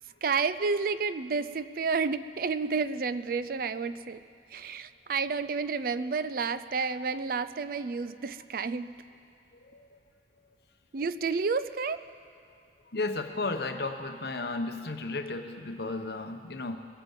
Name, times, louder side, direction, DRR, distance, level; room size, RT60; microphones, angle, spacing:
voice 1, 0.2-4.2 4.5-9.0 10.9-12.0, right 5 dB, 50° right, 14 dB, 0.4 m, -30 dB
voice 2, 12.9-16.8, left 3 dB, 60° left, 6 dB, 1.0 m, -34 dB
22.0 x 8.8 x 7.3 m, 2.5 s
head